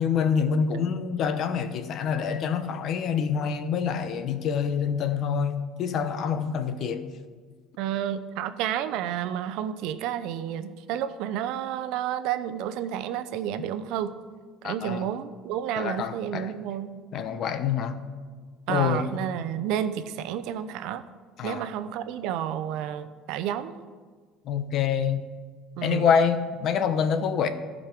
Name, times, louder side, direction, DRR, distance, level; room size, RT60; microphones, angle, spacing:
voice 1, 0.0-7.1 14.6-15.1 15.8-16.5 17.1-18.0 18.7-19.1 21.4-21.7 24.4-25.3 25.8-27.5, left 7 dB, 45° left, 0.8 m, -26 dB
voice 2, 7.8-14.1 14.6-16.9 18.7-21.0 21.4-23.7 25.8-26.1, right 10 dB, 70° right, 0.6 m, -30 dB
14.5 x 5.2 x 6.0 m
cardioid pair, 140°, 0 cm